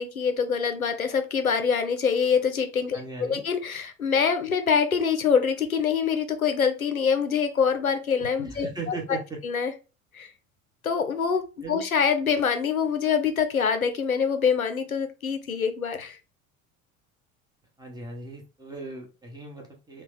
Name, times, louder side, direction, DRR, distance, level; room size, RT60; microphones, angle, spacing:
voice 1, 0.0-8.7 9.4-9.7 10.1-10.3 10.8-16.2, left 6 dB, 90° left, 8 dB, 0.5 m, -25 dB
voice 2, 2.9-3.4 8.4-9.4 11.6-11.8 17.8-20.0, right 3 dB, 10° right, 0 dB, 1.2 m, -38 dB
3.4 x 2.2 x 3.5 m, 0.31 s
figure-of-eight pair, 65°, 41 cm